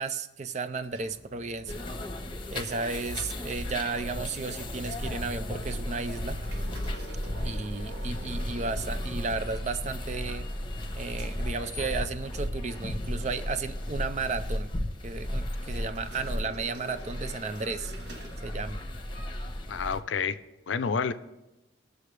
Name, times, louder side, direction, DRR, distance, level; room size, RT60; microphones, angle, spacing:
voice 1, 0.0-1.7 2.5-6.4 7.4-10.5 10.9-14.7 15.0-17.9 18.4-18.8, right 4 dB, 40° right, 11 dB, 0.4 m, -34 dB
sound 1, 0.8-9.8 10.3-12.4 12.7-13.0 13.7-14.6 15.8-19.1, right 1 dB, 65° right, 1.3 m, -49 dB
sound 2, 1.7-20.0, left 1 dB, 25° left, 0.9 m, -35 dB
voice 2, 19.7-20.4 20.7-21.1, left 5 dB, 80° left, 13 dB, 0.5 m, -28 dB
19.5 x 6.8 x 3.3 m, 1.0 s
head